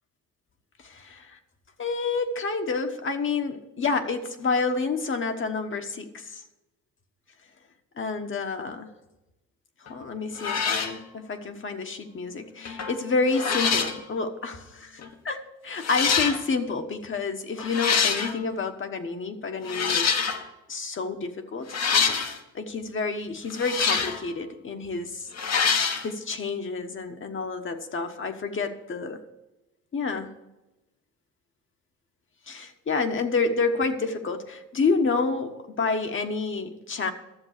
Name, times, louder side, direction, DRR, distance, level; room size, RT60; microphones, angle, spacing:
voice 1, 0.8-1.4 1.8-6.4 8.0-8.9 9.9-20.1 20.7-21.8 22.5-25.3 26.0-29.2 29.9-30.3 32.5-37.1, left 4 dB, 40° left, 6 dB, 1.3 m, -29 dB
sound 1, 9.9-10.0 10.4-11.0 12.6-13.0 13.3-14.0 15.0-15.1 15.8-16.4 17.6-18.4 19.6-20.5 21.7-22.4 23.5-24.2 25.3-26.0, left 6 dB, 60° left, 1.3 m, -25 dB
12.0 x 7.2 x 6.6 m, 1.0 s
cardioid pair, 90°, 30 cm